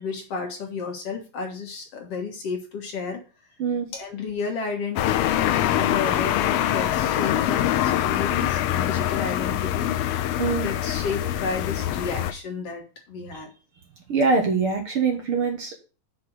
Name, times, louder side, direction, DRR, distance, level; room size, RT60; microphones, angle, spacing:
voice 1, 0.0-3.2 3.9-9.9 10.6-13.5, left 5 dB, 55° left, 3 dB, 2.3 m, -32 dB
sound 1, 5.0-12.3, left 12 dB, 80° left, 1.6 m, -24 dB
voice 2, 14.1-15.8, right 4 dB, 55° right, 2 dB, 1.9 m, -23 dB
6.4 x 5.2 x 6.2 m, 0.35 s
omnidirectional pair, 3.4 m